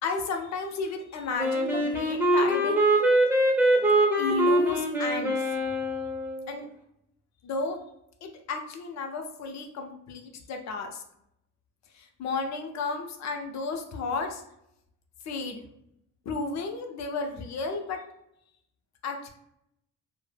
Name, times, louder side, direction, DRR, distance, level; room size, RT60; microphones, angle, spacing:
voice 1, 0.0-3.0 4.2-5.5 6.5-6.7 7.4-7.8 8.2-11.0 11.9-14.4 15.2-15.6 16.3-18.0 19.0-19.3, left 4 dB, 65° left, 4 dB, 0.5 m, -33 dB
Wind instrument woodwind instrument, 1.4-6.5, right 1 dB, 5° right, 0.5 m, -23 dB
2.1 x 2.1 x 3.2 m, 0.79 s
cardioid pair, 90°, 30 cm